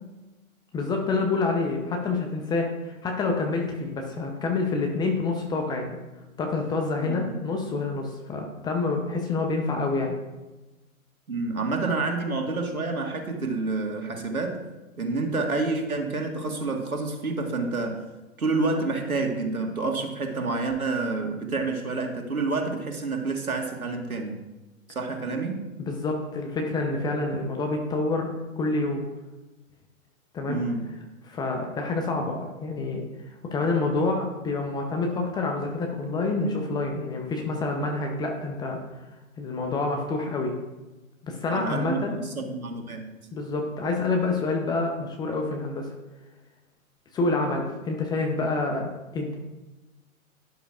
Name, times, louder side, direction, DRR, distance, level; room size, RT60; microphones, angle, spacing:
voice 1, 0.7-6.0 6.4-10.1 25.8-29.0 30.3-30.6 31.2-38.8 39.4-40.5 41.2-42.2 43.3-45.9 47.1-49.4, left 3 dB, 10° left, 2 dB, 0.7 m, -27 dB
voice 2, 11.3-14.6 15.0-18.0 18.4-24.4 24.9-25.7 30.5-30.9 41.5-43.1, right 3 dB, 85° right, 3 dB, 1.8 m, -28 dB
12.5 x 10.5 x 2.5 m, 1.1 s
figure-of-eight pair, 120°, 42 cm